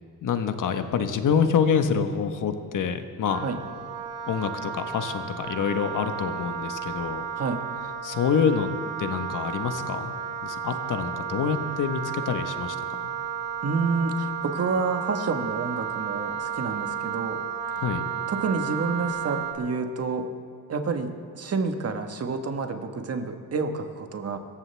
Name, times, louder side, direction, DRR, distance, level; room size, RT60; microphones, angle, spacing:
voice 1, 0.2-3.4 4.3-7.3 8.0-8.7 9.0-13.1 17.7-18.0, left 6 dB, 50° left, 8 dB, 1.3 m, -26 dB
Wind instrument woodwind instrument, 3.3-19.5, right 7 dB, 75° right, 2.2 m, -33 dB
voice 2, 13.6-17.4 18.3-20.3 20.7-24.4, right 4 dB, 40° right, 6 dB, 1.5 m, -29 dB
25.0 x 14.5 x 3.5 m, 2.4 s
cardioid pair, 120°, 38 cm